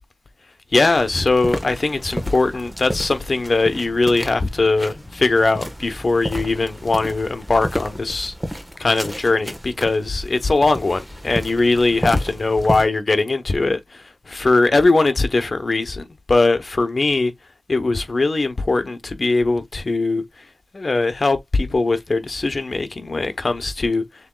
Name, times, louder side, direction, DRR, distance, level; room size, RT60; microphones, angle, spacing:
voice 1, 0.7-8.3 8.8-17.3 17.7-20.4 20.7-24.0, left 3 dB, 60° left, 1.0 m, -20 dB
sound 1, 0.9-12.9, equal, 5° right, 1.4 m, -32 dB
6.8 x 3.1 x 2.3 m
wide cardioid pair, 55°, 0 cm